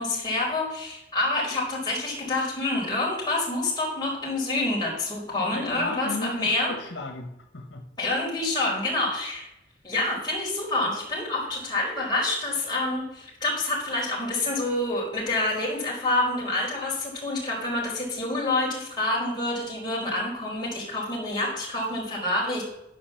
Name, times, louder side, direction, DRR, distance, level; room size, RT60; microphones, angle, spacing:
voice 1, 0.0-6.7 8.0-9.5 9.8-22.6, left 2 dB, 25° left, -5 dB, 4.7 m, -27 dB
voice 2, 5.4-7.8, left 2 dB, 85° left, 3 dB, 1.5 m, -36 dB
11.0 x 5.3 x 7.3 m, 0.84 s
head